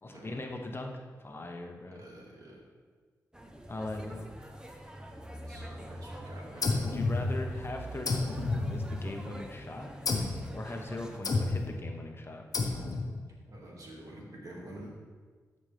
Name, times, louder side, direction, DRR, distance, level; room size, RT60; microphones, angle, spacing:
voice 1, 0.0-2.0 3.7-4.3 6.8-9.9 10.5-12.5, left 2 dB, 35° left, 3 dB, 1.0 m, -40 dB
voice 2, 2.0-2.6 5.3-6.8 13.4-14.9, right 1 dB, 60° right, -3 dB, 2.2 m, -48 dB
sound 1, 3.3-11.2, right 1 dB, 10° right, 1.0 m, -45 dB
sound 2, 6.6-7.7 8.1-9.4 10.1-10.5 11.2-11.8 12.5-13.2, left 3 dB, 65° left, 1.0 m, -31 dB
13.0 x 5.3 x 3.4 m, 1.5 s
cardioid pair, 55°, 7 cm